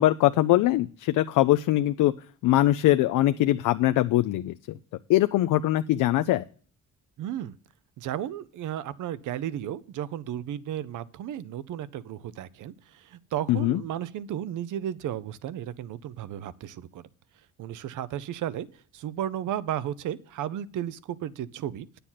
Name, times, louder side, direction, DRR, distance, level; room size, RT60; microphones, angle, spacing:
voice 1, 0.0-2.1 2.4-4.8 5.1-6.4 13.5-13.8, left 15 dB, 85° left, 10 dB, 0.5 m, -22 dB
voice 2, 7.2-7.6 8.0-17.1 17.6-21.9, right 11 dB, 80° right, 18 dB, 0.7 m, -34 dB
9.8 x 6.8 x 5.7 m, 0.43 s
cardioid pair, 105°, 31 cm